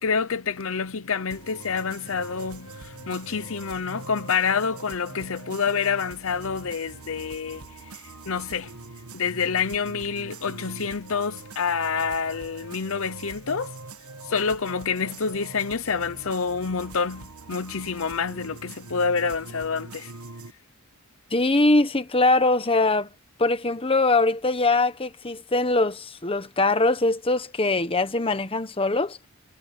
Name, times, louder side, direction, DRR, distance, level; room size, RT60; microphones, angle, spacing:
voice 1, 0.0-7.6 8.3-8.7 9.1-13.7 14.3-20.1, left 5 dB, 70° left, 0.8 m, -27 dB
sound 1, 1.3-20.5, right 3 dB, 90° right, 1.5 m, -43 dB
voice 2, 21.3-23.1 23.4-29.2, left 2 dB, 25° left, 1.2 m, -22 dB
head